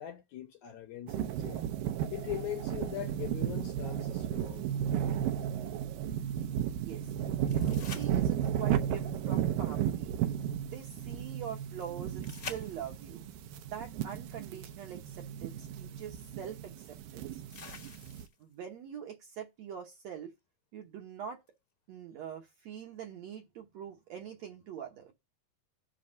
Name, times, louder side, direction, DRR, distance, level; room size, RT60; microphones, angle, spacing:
voice 1, 0.0-1.7 2.1-4.7, left 12 dB, 70° left, 2.0 m, -41 dB
sound 1, 1.1-18.3, right 10 dB, 85° right, 2.4 m, -34 dB
voice 2, 6.8-7.1 7.5-10.1 10.6-13.2 13.7-17.4 18.4-20.3 20.7-21.4 21.9-25.1, right 8 dB, 65° right, 1.8 m, -44 dB
sound 2, 7.5-8.7 12.2-13.2 15.1-15.2 17.5-18.5 21.5-21.6, left 5 dB, 40° left, 1.3 m, -46 dB
5.8 x 5.3 x 6.4 m
omnidirectional pair, 4.1 m